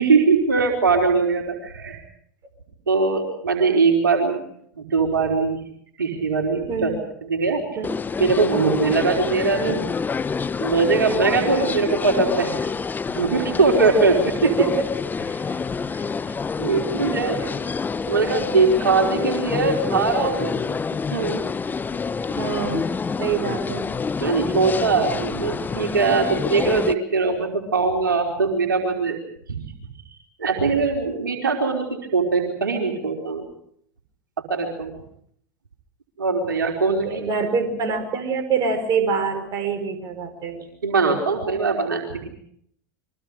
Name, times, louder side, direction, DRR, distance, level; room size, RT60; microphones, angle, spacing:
voice 1, 0.0-2.0 2.9-4.4 4.8-5.6 6.0-6.9 7.2-7.6 8.2-9.7 10.6-12.7 13.1-14.3 15.4-15.6 15.9-16.0 16.6-17.3 18.1-20.8 21.1-21.5 24.2-29.2 29.5-29.6 30.4-31.8 32.1-33.4 34.5-34.9 36.2-37.2 40.8-42.3, right 4 dB, 80° right, 2 dB, 4.3 m, -21 dB
sound 1, 7.8-26.9, left 5 dB, 15° left, 0.9 m, -27 dB
voice 2, 14.4-14.9 17.4-17.5 22.3-22.9 23.2-24.0 36.8-40.7, right 5 dB, 40° right, 6 dB, 5.3 m, -25 dB
29.5 x 23.5 x 5.0 m, 0.68 s
figure-of-eight pair, 80°, 11 cm